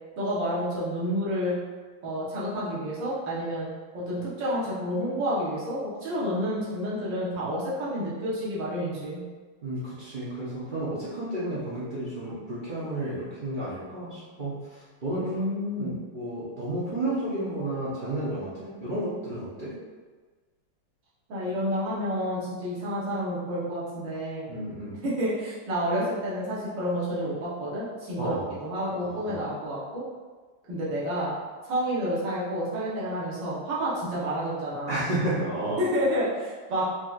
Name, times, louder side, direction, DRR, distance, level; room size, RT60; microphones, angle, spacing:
voice 1, 0.2-1.6 2.0-3.7 3.9-9.2 15.2-16.0 21.3-24.5 25.0-28.4 28.6-30.0 30.7-31.3 31.6-35.1 35.8-36.9, equal, 65° right, -8 dB, 1.8 m, -29 dB
voice 2, 9.6-14.6 15.0-15.3 15.8-19.7 24.5-25.0 28.2-28.5 28.9-29.4 34.9-35.8, right 1 dB, 90° right, -10 dB, 0.4 m, -32 dB
4.7 x 3.0 x 2.4 m, 1.4 s
omnidirectional pair, 2.2 m